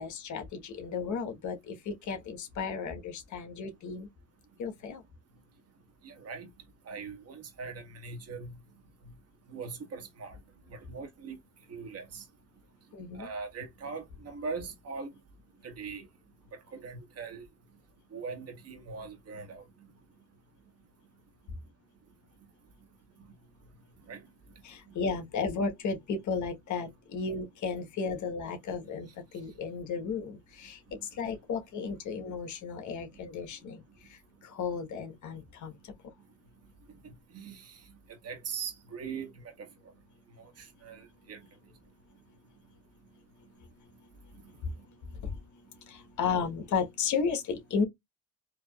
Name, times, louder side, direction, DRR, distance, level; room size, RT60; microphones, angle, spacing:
voice 1, 0.0-4.1 4.6-5.0 12.9-13.3 24.6-29.1 29.3-30.8 31.1-33.8 34.1-35.7 44.6-44.7 45.1-45.4 45.9-47.8, left 5 dB, 75° left, 1.4 m, -34 dB
voice 2, 6.0-6.5 6.9-8.5 9.5-10.4 10.7-11.4 11.7-12.2 13.1-15.1 15.6-16.1 16.8-17.4 18.1-19.6 24.1-24.2 37.3-37.8 38.2-39.3 40.4-41.4, right 5 dB, 55° right, 1.6 m, -41 dB
4.6 x 2.9 x 2.4 m
cardioid pair, 90°, 30 cm